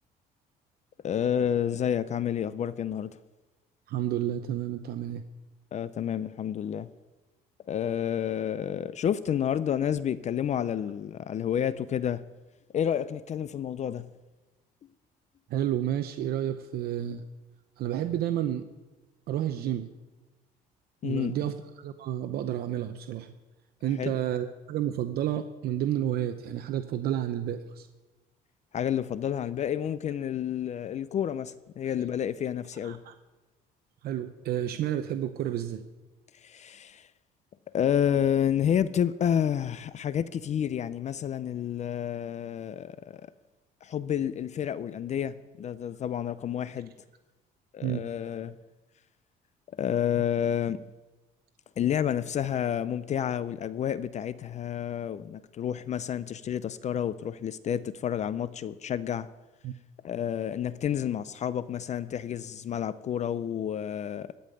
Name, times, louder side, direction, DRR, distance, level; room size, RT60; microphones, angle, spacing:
voice 1, 1.0-3.1 5.7-6.9 7.7-12.2 12.7-14.1 21.0-21.3 24.0-24.2 28.7-33.0 36.4-37.1 37.7-43.2 43.8-46.9 47.7-48.6 49.8-50.8 51.8-59.3 60.0-64.4, left 9 dB, 45° left, 0.5 m, -30 dB
voice 2, 3.9-5.2 15.5-17.2 17.8-18.6 19.3-19.9 21.0-23.3 23.8-27.9 32.8-33.1 34.0-35.9 47.8-48.0 59.6-59.7, right 11 dB, 65° right, 0.8 m, -30 dB
15.0 x 5.5 x 9.2 m
cardioid pair, 110°, 17 cm